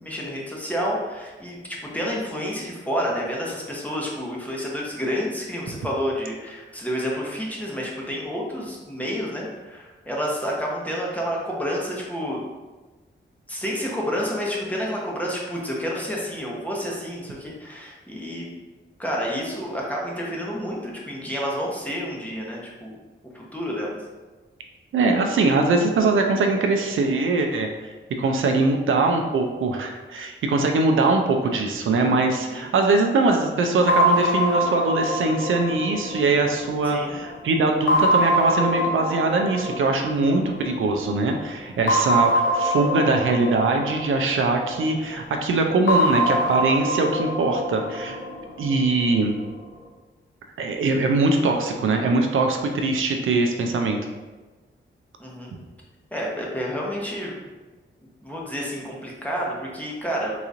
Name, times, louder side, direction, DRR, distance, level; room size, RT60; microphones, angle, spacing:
voice 1, 0.0-12.4 13.5-18.6 19.0-23.0 23.3-24.0 32.5-32.7 36.8-37.2 55.2-55.6 56.1-57.4 58.2-60.3, equal, 5° left, -3 dB, 0.9 m, -29 dB
voice 2, 24.9-48.2 48.6-49.3 50.6-54.0, right 3 dB, 75° right, 3 dB, 0.4 m, -22 dB
sound 1, 33.9-37.2 37.9-40.8 41.9-45.0 45.9-49.0, equal, 75° left, 0.6 m, -24 dB
3.8 x 2.9 x 2.5 m, 1.2 s
cardioid pair, 75°, 21 cm